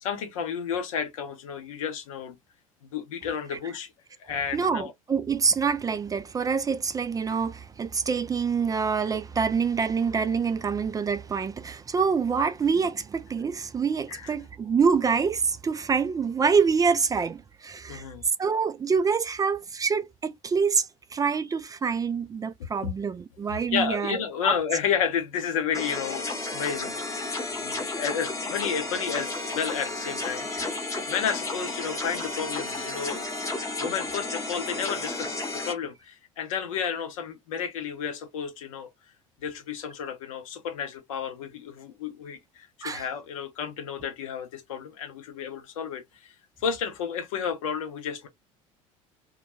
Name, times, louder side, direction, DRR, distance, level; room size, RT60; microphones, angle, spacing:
voice 1, 0.0-2.3 2.9-3.9 4.2-4.9 14.1-14.3 17.9-18.2 22.8-22.9 23.7-26.2 26.5-30.8 31.0-33.3 33.8-35.4 35.6-38.9 39.4-46.3 46.6-48.3, left 7 dB, 75° left, 0.7 m, -31 dB
voice 2, 4.5-18.0 18.4-24.6 42.8-43.0, right 5 dB, 20° right, 0.3 m, -26 dB
sound 1, 25.7-35.7, left 2 dB, 20° left, 0.9 m, -32 dB
2.3 x 2.2 x 2.9 m
hypercardioid pair, 70°, 17 cm